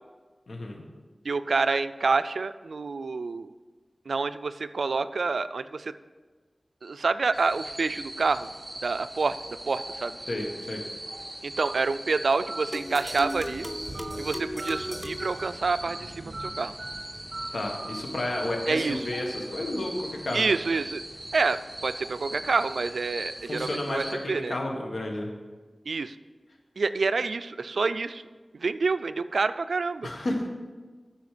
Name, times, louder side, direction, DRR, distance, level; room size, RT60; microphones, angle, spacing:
voice 1, 0.5-0.8 10.3-10.8 17.5-20.4 23.5-25.3 30.0-30.5, left 1 dB, 75° left, 1 dB, 1.6 m, -31 dB
voice 2, 1.2-3.5 4.1-5.9 6.8-8.5 8.8-10.2 11.4-13.7 14.2-16.7 18.7-19.1 20.3-21.0 21.3-24.6 25.9-26.2 26.8-28.2 28.5-30.1, right 4 dB, 90° right, 13 dB, 0.3 m, -28 dB
sound 1, 7.3-24.1, right 1 dB, 25° right, 1.4 m, -40 dB
Telephone, 11.6-11.7 12.5-12.6 13.3-13.4 13.9-14.2 14.6-14.8 15.2-15.4 15.8-16.0 16.3-16.5 16.8-17.0 17.3-17.5 17.8-18.0 18.3-18.5, right 2 dB, 70° right, 0.8 m, -39 dB
sound 2, 12.7-16.2, left 1 dB, 10° left, 0.6 m, -37 dB
12.0 x 5.2 x 5.0 m, 1.3 s
wide cardioid pair, 65°, 0 cm